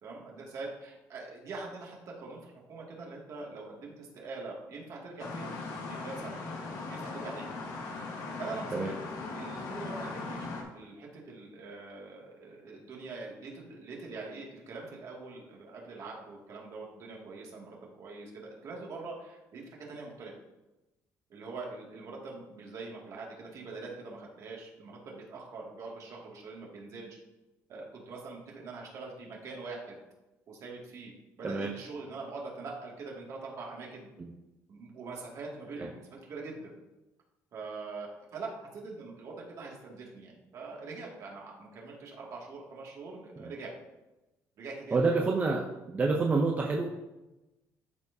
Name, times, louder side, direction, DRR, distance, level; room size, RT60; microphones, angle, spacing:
voice 1, 0.0-6.4 6.9-7.5 8.4-9.0 9.4-20.4 21.3-27.2 27.7-30.0 30.5-31.1 31.4-34.1 34.7-36.7 37.5-43.7 44.6-45.2, right 3 dB, 55° right, -2 dB, 2.2 m, -43 dB
sound 1, 5.2-10.6, left 3 dB, 70° left, 1.4 m, -39 dB
voice 2, 44.9-46.9, right 3 dB, 25° right, 1 dB, 0.7 m, -28 dB
12.5 x 4.7 x 2.7 m, 1.0 s
cardioid pair, 130°, 6 cm